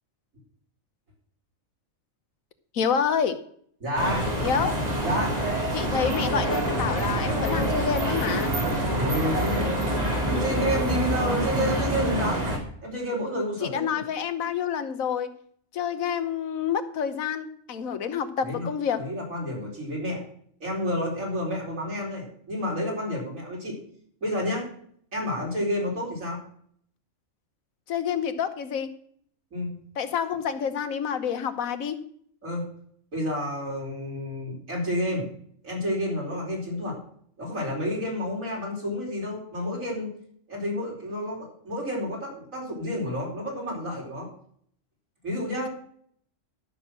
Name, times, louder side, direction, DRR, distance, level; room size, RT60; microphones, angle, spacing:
voice 1, 2.7-3.4 4.4-4.8 5.7-8.5 13.6-15.3 15.7-19.0 27.9-28.9 30.0-32.0, left 7 dB, 90° left, 10 dB, 1.4 m, -28 dB
voice 2, 3.8-4.3 5.0-5.4 8.9-12.4 12.8-14.0 18.4-18.7 19.0-20.2 20.6-23.8 24.2-24.7 25.1-26.4 29.5-29.8 32.4-32.7 33.1-35.3 35.6-37.0 37.4-40.1 40.5-44.3 45.2-45.7, equal, 80° right, -3 dB, 4.6 m, -30 dB
sound 1, 4.0-12.6, right 1 dB, 30° right, 2.4 m, -26 dB
12.5 x 6.3 x 6.2 m, 0.62 s
omnidirectional pair, 1.4 m